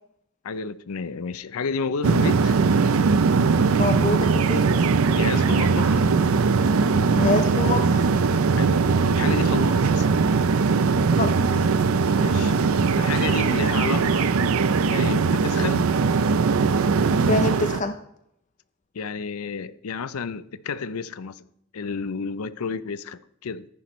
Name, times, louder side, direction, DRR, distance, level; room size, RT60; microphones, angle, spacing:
voice 1, 0.4-2.6 5.1-6.1 8.6-10.1 12.2-12.5 13.0-14.3 14.9-15.9 18.9-21.4 21.7-23.7, left 5 dB, 80° left, 0.5 m, -31 dB
sound 1, 2.0-17.8, right 4 dB, 70° right, 0.5 m, -20 dB
voice 2, 3.7-4.9 7.1-8.1 11.1-11.7 17.3-18.0, left 2 dB, 35° left, 0.6 m, -26 dB
14.0 x 10.5 x 3.1 m
head